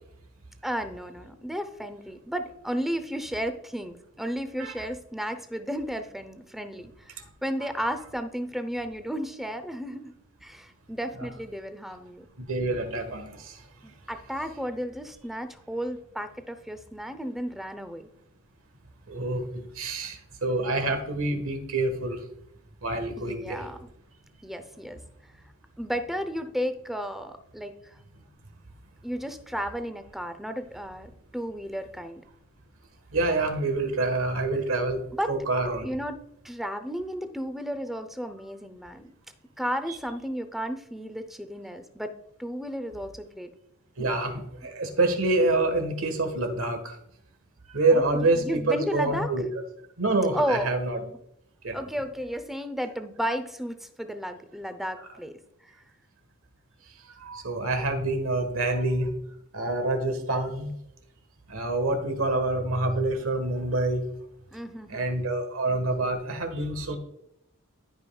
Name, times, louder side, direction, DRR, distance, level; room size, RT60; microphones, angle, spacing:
voice 1, 0.6-10.1 10.4-12.3 13.8-18.1 23.2-23.9 24.4-25.0 25.8-28.0 29.0-32.2 35.1-35.3 35.8-39.1 39.6-42.1 42.4-43.5 44.0-44.1 47.9-49.3 50.3-50.7 51.7-55.3 64.5-65.2, equal, ahead, 9 dB, 0.6 m, -33 dB
voice 2, 12.4-13.6 19.1-22.2 22.8-23.7 33.1-35.0 35.3-35.9 44.0-47.0 47.7-49.5 50.0-51.0 51.6-51.8 57.2-59.1 59.5-60.7 61.5-64.0 64.9-67.0, right 2 dB, 75° right, 6 dB, 1.4 m, -27 dB
13.0 x 5.4 x 2.3 m, 0.80 s
head